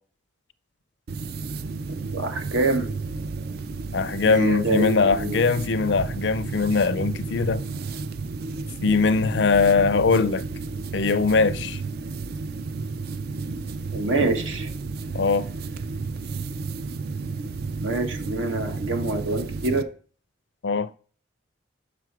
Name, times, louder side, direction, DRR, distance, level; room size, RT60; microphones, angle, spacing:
sound 1, 1.1-19.8, right 4 dB, 50° right, 0.4 m, -32 dB
voice 1, 2.1-2.9 4.2-5.4 13.9-14.7 17.8-19.8, right 2 dB, 75° right, 1.2 m, -26 dB
voice 2, 3.9-7.6 8.8-10.4 10.9-11.8 15.1-15.5 20.6-20.9, left 4 dB, 60° left, 0.4 m, -21 dB
6.1 x 4.9 x 4.6 m
head